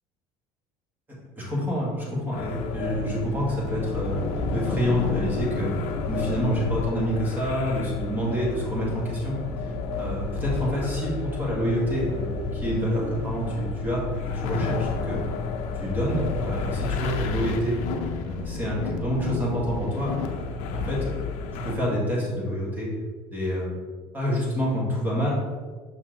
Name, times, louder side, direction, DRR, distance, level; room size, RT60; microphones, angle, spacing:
voice 1, 1.4-5.7 6.1-9.3 9.6-15.2 15.8-17.8 18.2-20.5 20.7-21.2 21.5-22.9 23.3-23.8 24.1-25.3, equal, 15° right, -5 dB, 1.9 m, -27 dB
sound 1, 2.3-21.8, left 4 dB, 65° left, 0.7 m, -31 dB
6.3 x 4.5 x 3.8 m, 1.4 s
cardioid pair, 145°, 12 cm